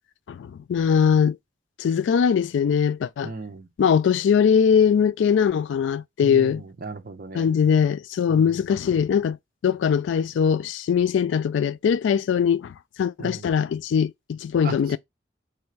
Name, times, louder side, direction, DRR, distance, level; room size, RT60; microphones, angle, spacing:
voice 1, 0.3-1.4 1.8-3.3 3.8-6.6 7.3-9.4 9.6-12.7 13.0-15.0, left 7 dB, 85° left, 0.3 m, -21 dB
voice 2, 3.2-3.7 6.2-7.5 8.3-8.6 13.2-13.5 14.6-15.0, right 3 dB, 50° right, 0.7 m, -37 dB
3.3 x 2.6 x 4.5 m
head